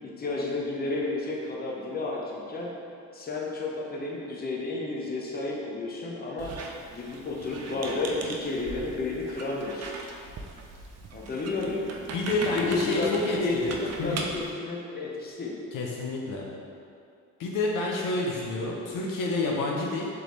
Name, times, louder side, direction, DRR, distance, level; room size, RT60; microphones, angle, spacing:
voice 1, 0.0-2.7 3.1-6.5 6.9-9.9 11.1-11.8 12.3-15.5, left 3 dB, 25° left, -3 dB, 0.8 m, -31 dB
Squeak, 6.4-14.5, right 3 dB, 50° right, 0.5 m, -39 dB
voice 2, 12.1-14.2 15.7-16.5 17.4-20.1, left 2 dB, 65° left, -2 dB, 0.7 m, -29 dB
3.7 x 3.5 x 3.2 m, 2.4 s
supercardioid pair, 75°, 34 cm